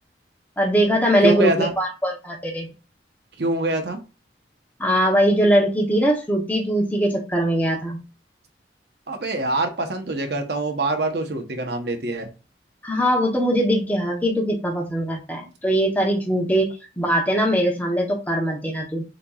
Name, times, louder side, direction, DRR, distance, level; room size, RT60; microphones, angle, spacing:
voice 1, 0.6-2.7 4.8-8.0 12.8-16.7 17.0-19.0, equal, 10° left, 0 dB, 0.9 m, -21 dB
voice 2, 1.2-1.7 3.4-4.0 9.1-12.3, right 2 dB, 65° right, 5 dB, 0.9 m, -24 dB
6.5 x 2.9 x 2.4 m, 0.30 s
head